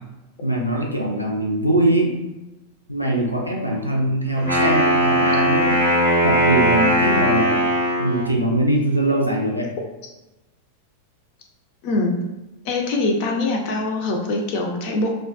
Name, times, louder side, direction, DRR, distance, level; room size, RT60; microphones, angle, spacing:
voice 1, 0.4-2.1 2.9-5.8 6.2-7.5 8.0-9.7, right 1 dB, 90° right, -1 dB, 0.4 m, -22 dB
Wind instrument woodwind instrument, 4.4-8.3, equal, 80° left, 1.0 m, -19 dB
voice 2, 12.6-15.1, left 2 dB, 45° left, 1 dB, 0.5 m, -23 dB
2.3 x 2.2 x 2.4 m, 1.0 s
figure-of-eight pair, 90°, 0 cm